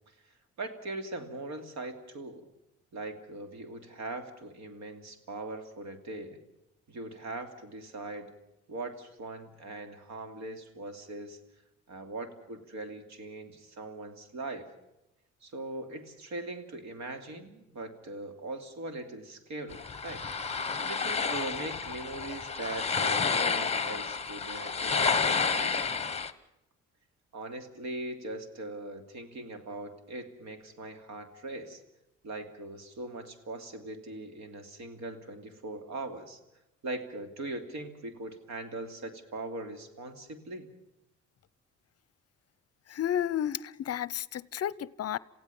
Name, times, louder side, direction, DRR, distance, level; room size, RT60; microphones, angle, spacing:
voice 1, 0.6-2.5 2.9-6.4 6.9-8.3 8.7-11.4 11.9-14.7 15.4-20.3 20.7-25.9 27.3-31.8 32.2-36.4 36.8-40.7, right 2 dB, 65° right, 2.9 m, -40 dB
sound 1, 19.7-26.3, left 5 dB, 20° left, 1.2 m, -30 dB
voice 2, 42.9-45.2, left 10 dB, 55° left, 0.7 m, -32 dB
28.0 x 16.0 x 7.1 m
cardioid pair, 90°, 30 cm